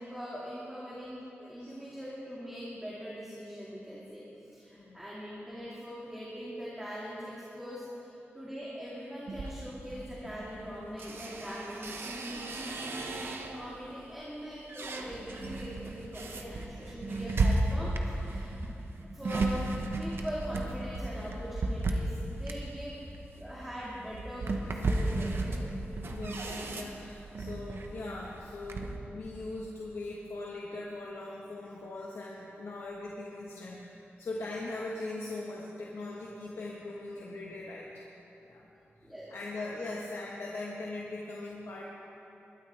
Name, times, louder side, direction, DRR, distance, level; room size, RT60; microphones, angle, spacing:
voice 1, 0.0-18.7 19.1-19.7 20.0-23.0 23.3-25.6 39.0-39.3, equal, 5° right, -8 dB, 2.1 m, -42 dB
voice 2, 1.4-1.7 4.7-5.0 26.1-38.0 38.4-38.7 39.3-41.8, left 2 dB, 75° left, -4 dB, 1.4 m, -40 dB
sound 1, 9.3-13.8 14.2-29.0, right 2 dB, 60° right, 1.0 m, -35 dB
21.5 x 12.5 x 3.4 m, 2.9 s
wide cardioid pair, 155°, 4 cm